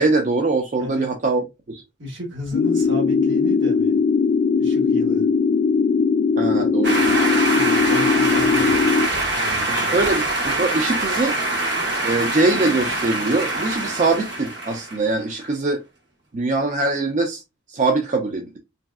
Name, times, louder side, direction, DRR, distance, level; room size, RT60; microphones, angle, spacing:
voice 1, 0.0-1.4 1.7-1.8 6.4-7.2 9.7-11.4 12.0-15.8 16.3-17.4 17.7-18.6, right 3 dB, 40° right, 0.4 m, -22 dB
voice 2, 2.0-4.0 4.6-5.3 7.5-10.0, left 1 dB, 75° right, 1.4 m, -33 dB
sound 1, 2.5-9.1, left 5 dB, 60° left, 0.3 m, -19 dB
sound 2, 6.8-15.1, right 2 dB, 60° right, 0.9 m, -24 dB
3.0 x 2.5 x 2.3 m
head